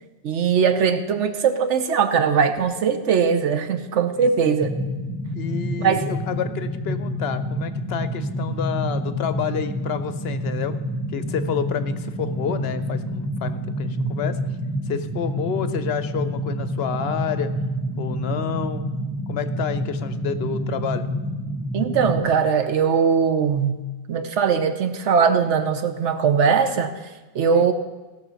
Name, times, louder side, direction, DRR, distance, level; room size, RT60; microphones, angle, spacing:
voice 1, 0.2-4.7 5.8-6.1 14.1-14.2 21.7-23.8 24.1-26.9 27.3-27.7, right 6 dB, 85° right, 9 dB, 1.2 m, -20 dB
voice 2, 4.2-4.6 5.3-10.7 11.1-14.4 14.9-17.5 18.0-18.8 19.3-21.1 27.5-27.7, left 8 dB, 65° left, 12 dB, 0.9 m, -29 dB
sound 1, 4.6-22.2, equal, 15° left, 1.0 m, -28 dB
16.5 x 6.2 x 5.6 m, 1.2 s
omnidirectional pair, 1.2 m